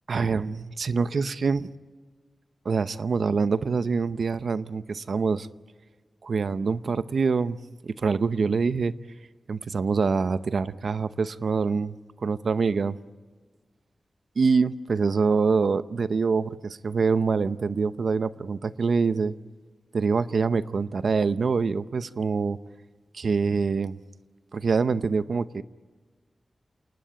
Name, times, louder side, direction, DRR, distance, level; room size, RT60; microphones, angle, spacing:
voice 1, 0.1-1.7 2.6-5.5 6.2-7.6 7.8-8.9 9.5-13.0 14.4-19.3 19.9-22.6 23.1-24.0 24.5-25.6, right 4 dB, 60° right, 14 dB, 0.7 m, -25 dB
28.0 x 19.0 x 9.2 m, 1.4 s
wide cardioid pair, 145°, 0 cm